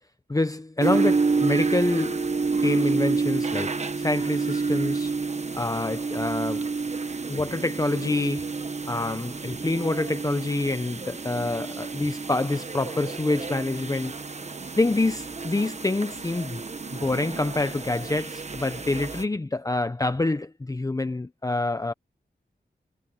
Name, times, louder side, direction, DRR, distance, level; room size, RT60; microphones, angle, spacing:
voice 1, 0.3-2.3 2.6-5.2 5.5-6.7 7.3-8.5 8.9-14.2 14.8-16.6 16.9-21.9, left 2 dB, 20° left, 0.7 m, -27 dB
sound 1, 0.8-19.2, right 4 dB, 40° right, 1.1 m, -29 dB
wide cardioid pair, 115°, 18 cm